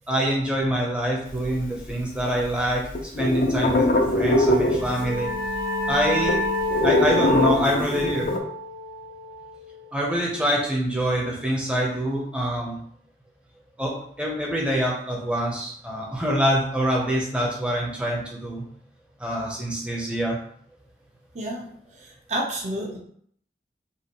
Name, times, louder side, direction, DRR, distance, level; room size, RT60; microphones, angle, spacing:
voice 1, 0.1-5.3 5.9-6.4 6.8-8.3 9.9-12.8 13.8-18.6 19.2-20.4, equal, 5° right, -3 dB, 0.8 m, -25 dB
sound 1, 1.3-2.4 2.7-5.3 5.6-5.7 5.9-8.4, left 1 dB, 50° left, 0.5 m, -22 dB
sound 2, 4.5-9.9, left 1 dB, 65° right, 0.8 m, -28 dB
voice 2, 21.3-23.0, right 1 dB, 40° right, -1 dB, 0.9 m, -31 dB
5.6 x 2.5 x 3.1 m, 0.64 s
head